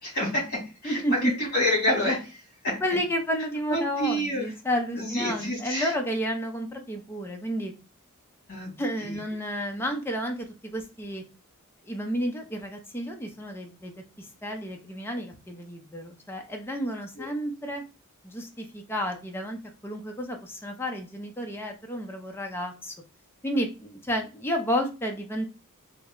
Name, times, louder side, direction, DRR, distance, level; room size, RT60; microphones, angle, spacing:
voice 1, 0.0-2.8 3.7-4.5 5.0-5.9 8.5-8.7 9.0-9.1 17.2-17.3, left 1 dB, 45° left, -3 dB, 2.0 m, -28 dB
voice 2, 0.8-1.3 2.8-7.7 8.8-11.2 11.8-13.9 14.2-17.8 18.2-22.9 23.4-25.5, equal, 10° left, 3 dB, 0.5 m, -31 dB
3.4 x 2.1 x 3.6 m, 0.30 s
head